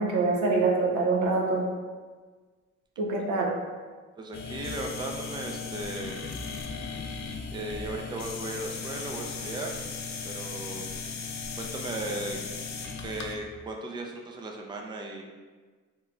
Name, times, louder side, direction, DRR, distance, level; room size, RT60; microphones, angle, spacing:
voice 1, 0.0-1.7 3.0-3.5, right 3 dB, 90° right, 0 dB, 0.7 m, -25 dB
voice 2, 4.2-6.2 7.5-9.8 10.2-10.8 11.6-12.4 13.0-15.2, right 2 dB, 15° right, 1 dB, 0.4 m, -36 dB
sound 1, 4.3-13.4, left 5 dB, 65° left, 0.5 m, -37 dB
3.0 x 2.2 x 3.7 m, 1.4 s
cardioid pair, 90°, 30 cm